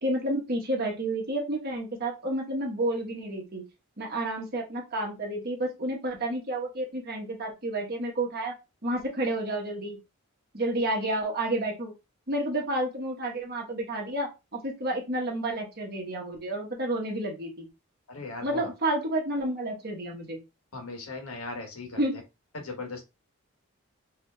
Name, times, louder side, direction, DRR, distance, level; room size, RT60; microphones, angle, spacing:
voice 1, 0.0-3.7 4.0-8.5 8.8-10.0 10.5-11.9 12.3-17.7 18.4-20.4 21.9-22.2, right 1 dB, 45° right, 1 dB, 1.2 m, -30 dB
voice 2, 18.1-18.7 20.7-22.0 22.5-23.0, left 3 dB, 80° left, 3 dB, 1.3 m, -38 dB
4.8 x 2.8 x 2.3 m, 0.26 s
head